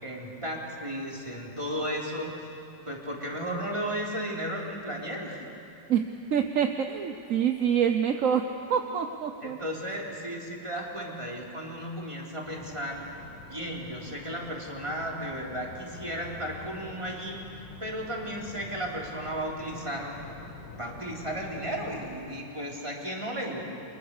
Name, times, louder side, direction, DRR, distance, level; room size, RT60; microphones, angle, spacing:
voice 1, 0.0-2.5 2.9-5.4 9.4-13.0 13.5-20.1 20.7-23.6, equal, 15° right, -2 dB, 3.6 m, -34 dB
voice 2, 5.9-9.6, right 8 dB, 55° right, 6 dB, 1.1 m, -26 dB
sound 1, 12.4-22.2, left 4 dB, 85° left, 2.5 m, -46 dB
29.5 x 24.5 x 6.7 m, 2.6 s
omnidirectional pair, 2.0 m